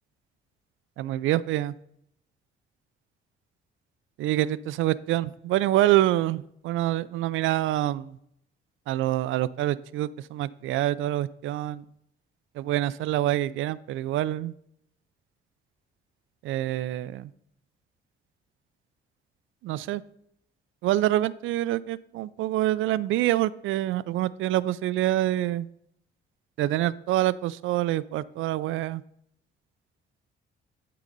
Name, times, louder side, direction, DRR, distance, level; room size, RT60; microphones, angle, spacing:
voice 1, 1.0-1.7 4.2-8.2 8.9-11.8 12.6-14.5 16.4-17.3 19.6-20.0 20.8-25.7 26.6-29.0, right 14 dB, 80° right, 18 dB, 0.4 m, -26 dB
11.5 x 3.9 x 5.3 m, 0.72 s
cardioid pair, 90°, 20 cm